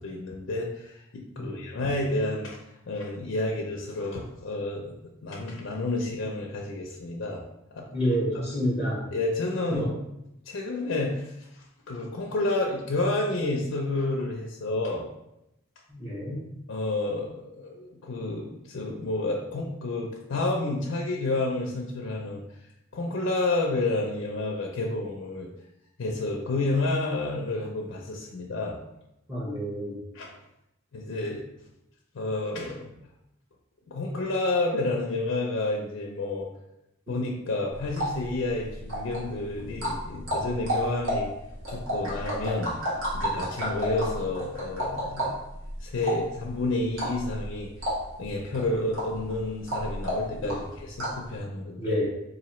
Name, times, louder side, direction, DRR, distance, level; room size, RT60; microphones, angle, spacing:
voice 1, 0.0-2.6 2.9-5.0 5.2-7.4 7.7-7.9 9.1-9.9 10.4-15.1 16.7-22.4 22.9-25.5 26.0-28.8 30.1-30.3 30.9-31.4 32.1-32.9 33.9-36.5 37.1-41.3 41.7-45.3 45.8-47.7 48.2-52.0, left 2 dB, 65° left, -1 dB, 0.4 m, -30 dB
voice 2, 7.9-9.0 9.7-9.9 15.9-16.4 29.3-30.0 50.4-50.6 51.8-52.0, equal, 10° right, -7 dB, 0.8 m, -29 dB
sound 1, 37.7-51.3, equal, 70° right, 1.2 m, -32 dB
4.0 x 2.6 x 3.0 m, 0.86 s
head